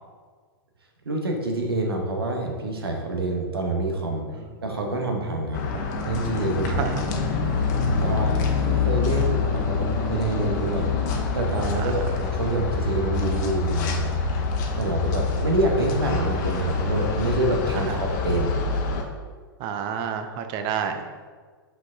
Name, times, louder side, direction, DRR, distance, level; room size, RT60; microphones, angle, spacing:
voice 1, 1.0-4.3 4.6-6.8 7.8-10.9 11.3-14.1 14.8-18.5, right 2 dB, 75° right, 2 dB, 1.2 m, -27 dB
sound 1, 5.5-19.0, left 4 dB, 50° left, 1.0 m, -26 dB
voice 2, 19.6-21.0, right 8 dB, 40° right, 7 dB, 0.6 m, -29 dB
5.8 x 4.9 x 3.7 m, 1.5 s
figure-of-eight pair, 105°, 13 cm